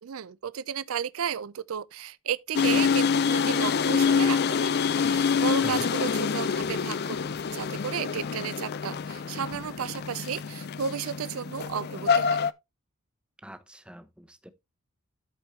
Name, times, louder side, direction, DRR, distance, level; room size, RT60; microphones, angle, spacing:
voice 1, 0.0-12.4, right 7 dB, 70° right, 0.4 m, -34 dB
sound 1, 2.5-12.5, left 6 dB, 45° left, 0.4 m, -26 dB
voice 2, 13.4-14.5, equal, 5° right, 0.7 m, -43 dB
13.0 x 4.4 x 3.1 m
head